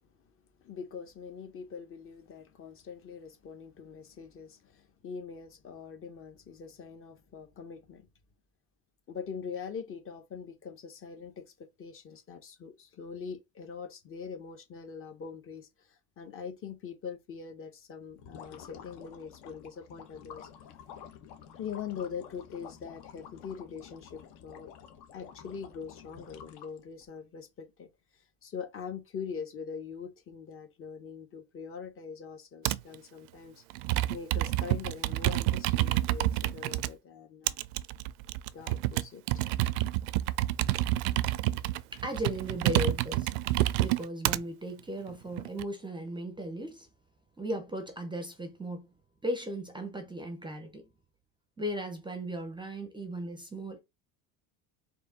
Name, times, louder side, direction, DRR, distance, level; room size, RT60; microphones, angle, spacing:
voice 1, 0.6-8.1 9.1-20.5 21.5-24.7 25.1-27.9 28.4-33.6 34.1-37.6 38.5-39.5 40.3-40.4, left 6 dB, 30° left, 0.8 m, -43 dB
sound 1, 18.1-27.1, left 8 dB, 60° left, 1.1 m, -50 dB
Computer keyboard, 32.6-32.9 33.7-36.9 37.5-44.4 45.1-45.6, right 16 dB, 85° right, 0.5 m, -28 dB
voice 2, 41.9-43.3 43.8-46.9 47.4-48.9 49.2-50.9 51.6-53.8, equal, 10° right, 0.6 m, -36 dB
4.6 x 2.7 x 3.9 m
supercardioid pair, 135°, 44 cm